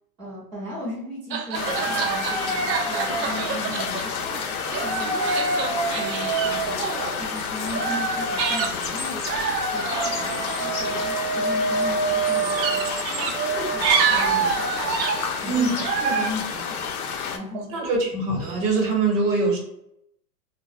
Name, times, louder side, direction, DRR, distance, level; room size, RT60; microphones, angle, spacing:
voice 1, 0.2-5.2 5.9-6.9 7.1-9.3 9.7-17.8, left 1 dB, 10° right, -9 dB, 0.7 m, -37 dB
sound 1, 1.3-4.2 4.7-8.8 9.2-16.3, right 5 dB, 85° right, 0.6 m, -26 dB
sound 2, 1.5-17.4, left 6 dB, 65° left, 0.5 m, -30 dB
sound 3, 3.4-15.9, left 2 dB, 35° left, 0.7 m, -41 dB
voice 2, 17.7-19.6, right 3 dB, 55° right, 0 dB, 1.0 m, -23 dB
2.2 x 2.1 x 2.6 m, 0.77 s
hypercardioid pair, 145°, 49 cm